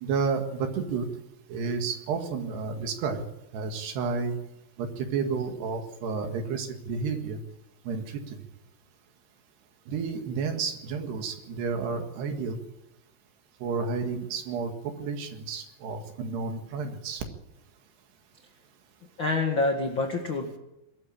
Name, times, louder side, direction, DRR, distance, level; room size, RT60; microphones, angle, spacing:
voice 1, 0.0-1.1 1.5-3.2 3.5-4.4 4.8-7.4 7.9-8.0 9.9-12.6 13.6-17.2, right 5 dB, 65° right, 6 dB, 3.7 m, -31 dB
voice 2, 19.2-20.6, left 3 dB, 70° left, 3 dB, 1.1 m, -27 dB
22.5 x 13.5 x 8.8 m, 0.90 s
omnidirectional pair, 5.6 m